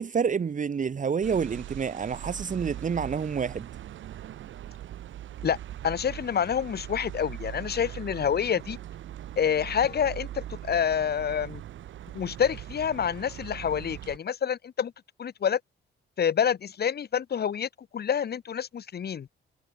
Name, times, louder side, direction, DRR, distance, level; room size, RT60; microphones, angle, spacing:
voice 1, 0.0-3.7, right 6 dB, 40° right, 2.3 m, -28 dB
sound 1, 1.2-14.2, right 12 dB, 75° right, 3.7 m, -41 dB
voice 2, 5.8-8.8 9.4-11.6 12.1-14.9 15.2-15.6 16.2-19.3, left 8 dB, 55° left, 3.8 m, -27 dB
cardioid pair, 90°, 20 cm